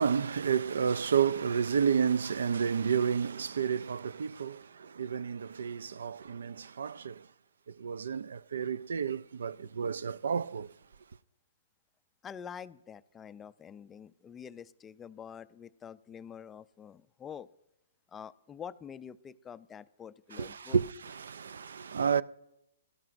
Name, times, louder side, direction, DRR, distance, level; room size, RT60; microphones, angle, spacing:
voice 1, 0.0-7.3 7.7-10.7 20.3-22.2, right 7 dB, 75° right, 0.3 m, -31 dB
voice 2, 12.2-17.5 18.1-20.8, left 8 dB, 15° left, 0.3 m, -46 dB
18.0 x 12.5 x 2.6 m
hypercardioid pair, 135°, 0 cm